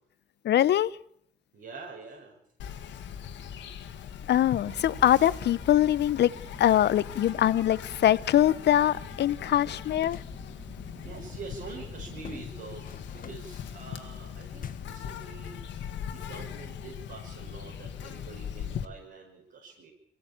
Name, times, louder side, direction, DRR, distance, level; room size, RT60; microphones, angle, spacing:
voice 1, 0.4-1.0 4.3-6.3 6.6-10.2, left 11 dB, 70° left, 18 dB, 0.8 m, -23 dB
voice 2, 1.5-2.4 11.0-15.6 16.1-19.9, right 4 dB, 70° right, -2 dB, 6.2 m, -45 dB
Insect, 2.6-18.8, left 8 dB, 90° left, 1.8 m, -40 dB
sound 1, 4.7-12.4, right 4 dB, 35° right, 1.8 m, -49 dB
sound 2, 10.1-10.4 12.2-13.6 14.6-15.1, left 8 dB, 50° left, 1.2 m, -46 dB
23.5 x 15.5 x 8.7 m, 0.70 s
cardioid pair, 100°, 18 cm